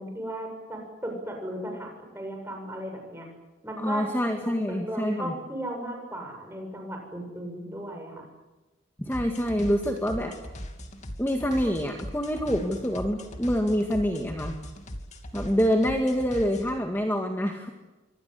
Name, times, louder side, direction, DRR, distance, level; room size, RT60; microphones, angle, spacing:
voice 1, 0.0-3.3 3.6-4.1 4.4-8.3, right 1 dB, 10° right, 2 dB, 7.4 m, -36 dB
voice 2, 3.8-5.4 9.0-10.4 11.2-14.6 15.3-17.7, equal, 10° left, 3 dB, 1.9 m, -26 dB
sound 1, 9.1-16.8, equal, 35° left, 2.8 m, -40 dB
26.0 x 25.0 x 8.3 m, 1.1 s
head